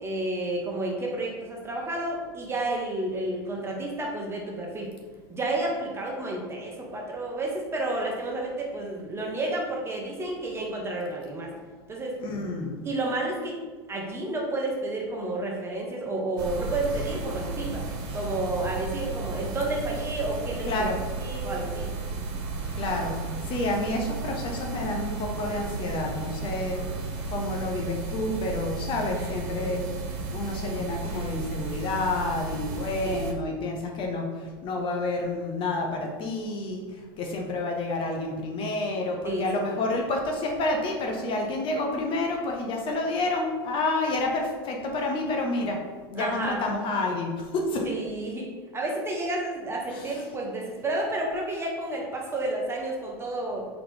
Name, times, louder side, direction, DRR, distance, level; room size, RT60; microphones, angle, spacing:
voice 1, 0.0-4.9 5.3-11.5 11.9-12.2 12.8-13.6 13.9-17.8 18.1-20.9 21.2-21.9 29.6-30.0 33.0-33.2 39.2-39.8 46.2-46.6 47.8-53.7, right 2 dB, 20° right, -1 dB, 0.9 m, -31 dB
voice 2, 12.2-12.8 20.7-21.0 22.7-26.8 27.3-29.8 30.3-45.8 46.1-47.9 49.9-50.1, left 2 dB, 45° left, 1 dB, 0.8 m, -29 dB
sound 1, 16.4-33.3, right 3 dB, 70° right, 0.8 m, -34 dB
4.0 x 2.9 x 3.4 m, 1.4 s
hypercardioid pair, 100°, 13 cm